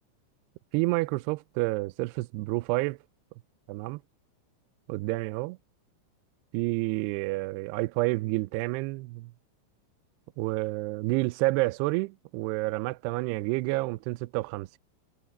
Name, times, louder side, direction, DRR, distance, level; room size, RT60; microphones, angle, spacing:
voice 1, 0.7-3.0 3.7-4.0 4.9-5.6 6.5-9.3 10.4-14.8, right 22 dB, 85° right, 2.3 m, -29 dB
omnidirectional pair, 5.3 m